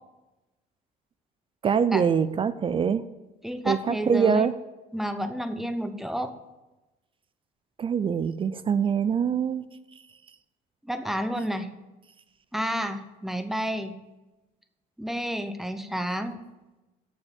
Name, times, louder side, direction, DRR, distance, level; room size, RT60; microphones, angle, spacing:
voice 1, 1.6-3.0 3.6-4.5 7.8-9.6, right 7 dB, 30° right, 15 dB, 0.4 m, -24 dB
voice 2, 3.4-4.5 4.9-6.3 10.8-11.7 12.5-14.0 15.0-16.4, equal, ahead, 9 dB, 0.7 m, -30 dB
7.1 x 6.5 x 6.9 m, 1.1 s
cardioid pair, 110°, 17 cm